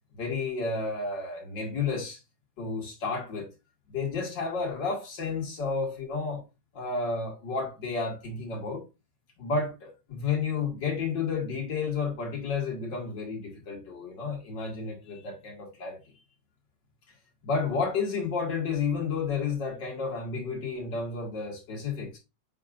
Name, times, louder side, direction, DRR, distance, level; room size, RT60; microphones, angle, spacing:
voice 1, 0.1-2.2 2.6-3.5 3.9-6.4 6.7-8.8 9.4-16.0 17.4-22.2, left 4 dB, 80° left, 2.6 m, -31 dB
7.3 x 5.2 x 2.5 m
omnidirectional pair, 1.9 m